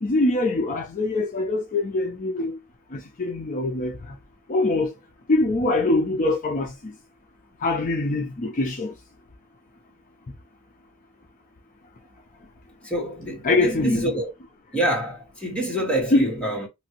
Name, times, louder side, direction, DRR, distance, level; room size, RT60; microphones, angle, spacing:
voice 1, 0.0-2.6 2.9-4.2 4.5-4.9 5.3-6.9 7.6-8.9 13.4-14.1 16.1-16.3, left 2 dB, 40° left, 0.5 m, -23 dB
voice 2, 12.8-14.3 14.7-16.7, right 1 dB, 5° left, 1.4 m, -26 dB
3.0 x 2.5 x 2.8 m
head